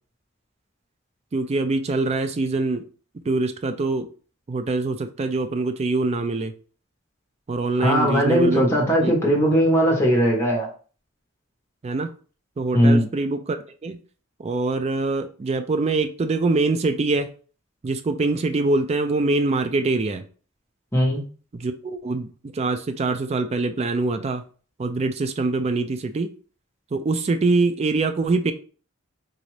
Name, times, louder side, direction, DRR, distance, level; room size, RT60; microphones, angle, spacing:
voice 1, 1.3-2.8 3.2-4.1 4.5-6.5 7.5-8.7 9.0-9.2 11.8-12.1 12.6-13.6 13.8-14.0 14.4-17.3 17.8-20.2 21.5-24.4 24.8-26.3 26.9-28.5, right 3 dB, 30° right, 9 dB, 0.3 m, -24 dB
voice 2, 7.8-10.7 12.7-13.1 20.9-21.2, equal, 10° left, -2 dB, 1.0 m, -19 dB
4.0 x 2.4 x 3.1 m, 0.39 s
head